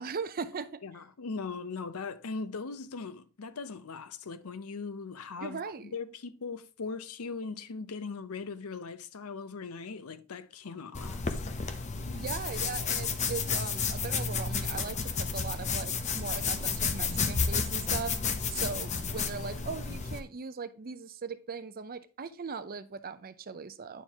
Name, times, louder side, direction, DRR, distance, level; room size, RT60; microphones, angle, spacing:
voice 1, 0.0-0.8 5.4-5.9 12.1-18.1 18.5-24.0, right 5 dB, 40° right, 0.6 m, -39 dB
voice 2, 0.8-5.6 5.9-11.4 12.1-12.2, left 4 dB, 70° left, 0.6 m, -39 dB
sound 1, 11.0-20.2, left 5 dB, 30° left, 0.7 m, -31 dB
9.3 x 4.5 x 3.5 m
head